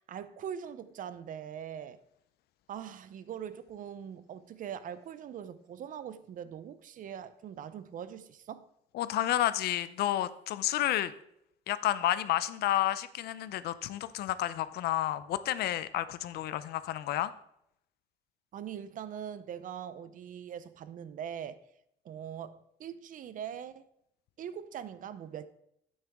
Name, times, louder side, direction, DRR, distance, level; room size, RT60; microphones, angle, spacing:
voice 1, 0.0-2.0 2.7-8.7 18.5-21.6 22.0-23.9 24.4-25.5, right 9 dB, 50° right, 0.6 m, -42 dB
voice 2, 8.9-11.1 11.7-17.3, left 13 dB, 70° left, 0.6 m, -30 dB
8.9 x 8.7 x 3.6 m
cardioid pair, 110°, 17 cm